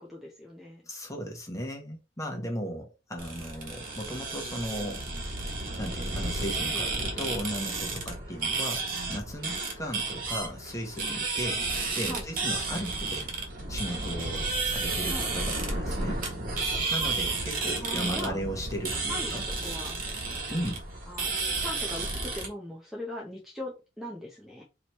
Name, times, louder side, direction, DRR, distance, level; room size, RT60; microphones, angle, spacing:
voice 1, 0.0-0.8 6.7-6.9 12.0-12.3 15.1-15.3 17.8-18.4 19.1-19.4 19.6-20.1 21.1-24.6, left 1 dB, ahead, 0.7 m, -40 dB
voice 2, 0.9-5.0 5.8-8.8 9.1-11.6 11.9-13.3 13.7-16.2 16.9-19.4 20.5-20.8, equal, 15° left, 1.1 m, -36 dB
sound 1, 3.2-22.5, right 3 dB, 45° right, 1.5 m, -32 dB
4.9 x 3.0 x 3.0 m
head